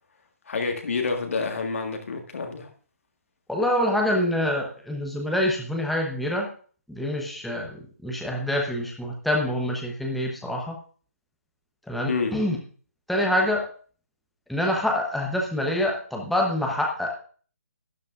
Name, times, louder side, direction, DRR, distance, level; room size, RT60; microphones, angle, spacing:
voice 1, 0.5-2.7 12.1-12.4, left 4 dB, 60° left, 4 dB, 1.7 m, -28 dB
voice 2, 3.5-6.5 6.9-10.7 11.9-12.6 13.1-13.6 14.5-17.1, left 1 dB, ahead, -1 dB, 0.9 m, -26 dB
12.0 x 10.5 x 2.5 m, 0.43 s
figure-of-eight pair, 145°, 8 cm